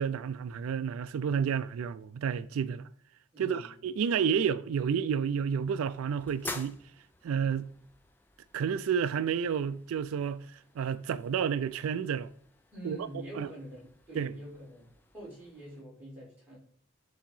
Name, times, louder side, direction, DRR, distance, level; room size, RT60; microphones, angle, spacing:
voice 1, 0.0-2.9 3.4-6.8 7.2-7.7 8.5-10.5 10.8-12.3 12.8-13.1 13.3-13.5 14.1-14.3, right 7 dB, 90° right, 0.3 m, -30 dB
voice 2, 3.3-3.7 12.7-14.9 15.1-16.6, right 1 dB, 5° right, 2.9 m, -45 dB
sound 1, 5.0-15.8, left 2 dB, 10° left, 0.3 m, -50 dB
7.2 x 2.8 x 5.4 m
head